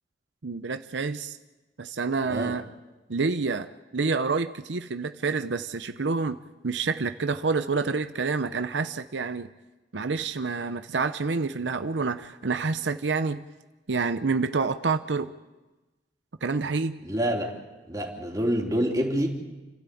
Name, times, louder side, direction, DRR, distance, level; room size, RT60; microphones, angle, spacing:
voice 1, 0.4-1.4 1.8-2.6 3.1-6.4 6.6-9.5 9.9-13.4 13.9-15.3 16.4-17.0, right 4 dB, 85° right, 10 dB, 0.8 m, -28 dB
voice 2, 17.0-17.5 17.9-19.3, equal, 20° right, 0 dB, 3.3 m, -27 dB
30.0 x 13.0 x 8.5 m, 1.2 s
head